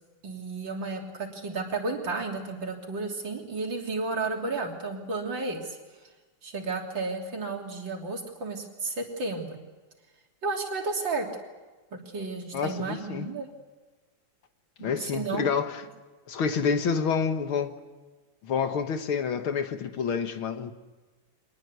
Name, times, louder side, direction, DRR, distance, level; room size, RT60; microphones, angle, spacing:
voice 1, 0.2-5.8 6.4-9.6 10.4-11.3 11.9-13.5 14.8-15.5, right 3 dB, 60° right, 4.0 m, -32 dB
voice 2, 12.5-13.3 14.8-15.8 16.3-17.7 18.4-20.7, left 6 dB, 80° left, 2.3 m, -28 dB
24.5 x 20.0 x 8.1 m
omnidirectional pair, 2.3 m